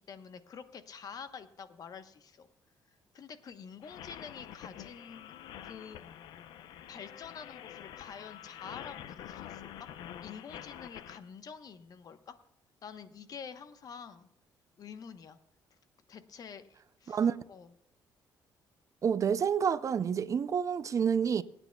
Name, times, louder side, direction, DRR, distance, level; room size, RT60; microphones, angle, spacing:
voice 1, 0.1-2.5 3.1-5.3 5.6-6.0 6.9-9.9 10.2-12.4 12.8-14.3 14.8-15.4 16.1-17.7, left 6 dB, 55° left, 1.0 m, -47 dB
sound 1, 3.8-11.2, left 10 dB, 85° left, 0.7 m, -47 dB
voice 2, 19.0-21.4, right 7 dB, 45° right, 0.5 m, -28 dB
26.5 x 9.0 x 2.3 m
cardioid pair, 95°, 8 cm